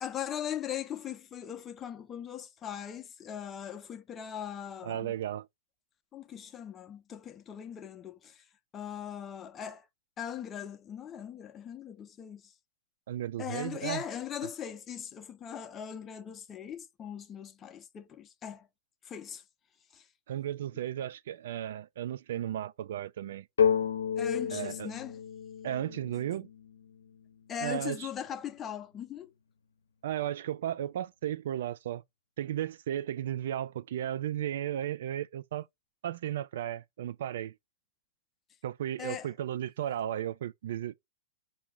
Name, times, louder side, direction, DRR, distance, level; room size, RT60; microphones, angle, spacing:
voice 1, 0.0-5.1 6.1-8.4 8.7-9.9 10.2-12.5 13.4-18.7 19.0-19.4 19.9-20.0 24.2-25.2 27.5-29.3 39.0-39.3, left 9 dB, 20° left, 0.7 m, -40 dB
voice 2, 4.8-5.5 13.1-14.0 20.3-23.5 24.5-24.9 25.6-26.5 27.6-28.1 30.0-32.0 32.4-35.7 36.0-37.5 38.6-40.9, right 11 dB, 60° right, 0.3 m, -34 dB
sound 1, 23.6-27.2, left 7 dB, 75° left, 0.7 m, -31 dB
4.7 x 2.7 x 3.4 m
hypercardioid pair, 115°, 0 cm